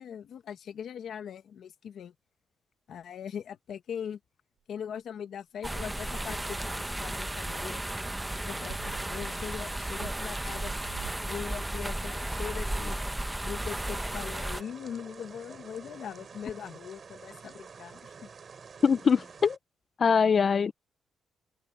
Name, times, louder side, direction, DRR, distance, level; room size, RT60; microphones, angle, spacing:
voice 1, 0.0-2.1 2.9-4.2 4.7-7.8 8.3-10.7 11.2-13.0 13.4-18.3, left 8 dB, 65° left, 1.4 m, -41 dB
sound 1, 5.6-14.6, right 1 dB, 10° right, 0.8 m, -34 dB
sound 2, 8.5-11.3, right 9 dB, 65° right, 4.1 m, -44 dB
sound 3, 13.6-19.6, right 5 dB, 40° right, 5.6 m, -48 dB
voice 2, 18.8-19.6 20.0-20.7, left 6 dB, 40° left, 0.5 m, -23 dB
cardioid pair, 135°, 0 cm